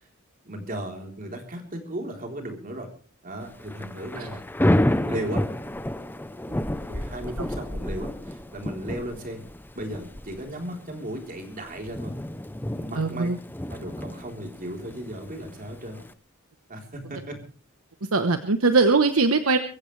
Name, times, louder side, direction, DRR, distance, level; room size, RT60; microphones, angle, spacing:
voice 1, 0.4-2.9 3.2-4.4 5.1-5.4 6.5-9.4 9.8-12.2 12.7-13.3 13.7-16.0 16.7-17.4, right 1 dB, 40° right, 3 dB, 3.7 m, -36 dB
Thunder / Rain, 3.5-16.1, left 1 dB, 10° left, 0.7 m, -30 dB
voice 2, 13.0-13.4 18.1-19.6, right 3 dB, 80° right, 8 dB, 1.1 m, -21 dB
23.5 x 15.0 x 3.3 m, 0.41 s
head